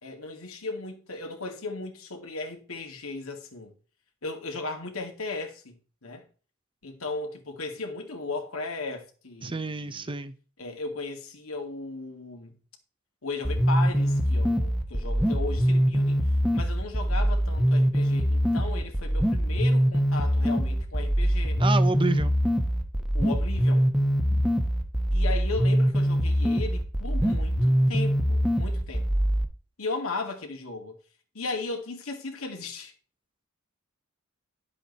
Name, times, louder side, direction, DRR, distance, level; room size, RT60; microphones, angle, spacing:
voice 1, 0.0-3.7 4.2-6.2 6.8-10.2 10.6-12.6 13.2-16.3 16.5-21.6 23.1-23.9 25.1-29.1 29.8-31.0 31.3-32.9, left 3 dB, 80° left, 2.2 m, -36 dB
voice 2, 9.4-10.4 21.6-22.3 24.3-24.4, right 3 dB, 25° right, 0.6 m, -29 dB
sound 1, 13.4-29.4, equal, ahead, 1.0 m, -23 dB
11.0 x 7.3 x 4.0 m
head